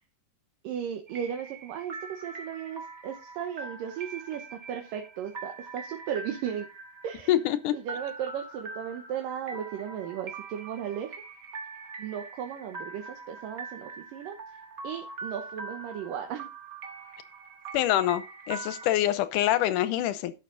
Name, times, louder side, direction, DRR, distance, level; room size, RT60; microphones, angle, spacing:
voice 1, 0.6-6.7 7.0-7.3 7.7-11.2 12.0-14.4 14.8-16.5, right 9 dB, 75° right, 2.7 m, -36 dB
sound 1, 1.1-18.9, right 3 dB, 55° right, 1.0 m, -43 dB
voice 2, 7.3-7.7 17.7-20.3, left 13 dB, 80° left, 2.1 m, -25 dB
11.5 x 7.0 x 3.9 m
omnidirectional pair, 4.0 m